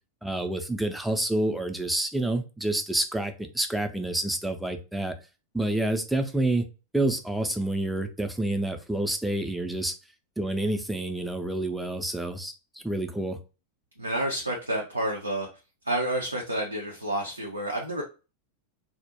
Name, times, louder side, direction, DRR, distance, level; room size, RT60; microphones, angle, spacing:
voice 1, 0.2-5.1 5.5-6.6 6.9-9.9 10.4-12.5 12.8-13.4, right 1 dB, 5° right, 6 dB, 0.4 m, -28 dB
voice 2, 14.0-15.5 15.8-18.0, right 1 dB, 85° right, -1 dB, 0.4 m, -29 dB
2.2 x 2.0 x 2.9 m, 0.32 s
figure-of-eight pair, 90°, 0 cm